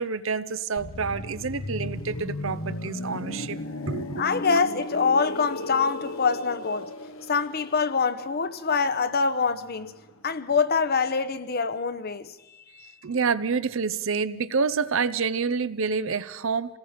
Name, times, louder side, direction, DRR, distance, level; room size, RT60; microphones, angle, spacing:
voice 1, 0.0-3.6 3.9-4.2 13.0-16.8, right 5 dB, 70° right, 0.7 m, -28 dB
sound 1, 0.8-10.4 10.7-10.9, left 2 dB, 80° left, 1.1 m, -36 dB
voice 2, 4.1-6.9 7.3-9.9 10.2-12.9, left 5 dB, 50° left, 0.9 m, -25 dB
27.5 x 18.5 x 5.1 m
head